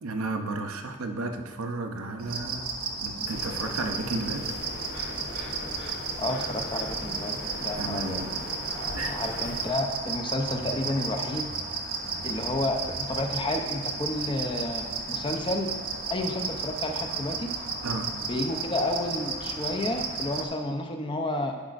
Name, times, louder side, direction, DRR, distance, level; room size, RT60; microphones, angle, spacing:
voice 1, 0.0-2.7 3.0-4.4 7.8-8.4 8.9-9.2 17.8-18.1, right 2 dB, 80° right, 5 dB, 0.7 m, -33 dB
sound 1, 2.2-20.4, right 4 dB, 45° right, 0.6 m, -33 dB
sound 2, 3.3-9.7, left 1 dB, 55° left, 0.9 m, -40 dB
voice 2, 6.2-8.2 8.7-11.5 12.2-15.8 16.1-17.5 18.2-21.6, left 1 dB, 20° left, 3 dB, 0.5 m, -31 dB
11.5 x 5.0 x 2.5 m, 1.4 s
head